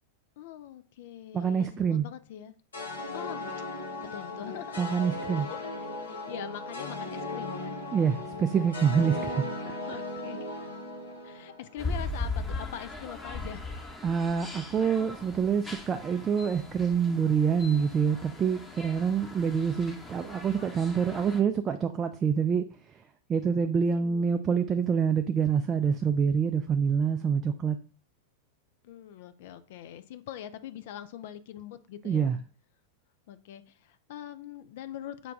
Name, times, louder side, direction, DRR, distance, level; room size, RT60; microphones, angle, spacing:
voice 1, 0.4-2.5 3.1-3.6 4.1-4.8 5.3-7.8 9.8-10.4 11.2-13.7 23.5-24.3 28.8-32.4 33.3-35.3, left 11 dB, 55° left, 0.4 m, -43 dB
voice 2, 1.3-2.1 4.8-5.5 7.9-9.7 14.0-23.0 23.3-27.8 32.0-32.4, right 6 dB, 25° right, 0.3 m, -26 dB
sound 1, 2.7-12.0, left 2 dB, 75° left, 0.9 m, -37 dB
sound 2, 11.8-21.4, left 3 dB, 10° left, 0.8 m, -39 dB
5.9 x 2.3 x 3.6 m
figure-of-eight pair, 90°, 0 cm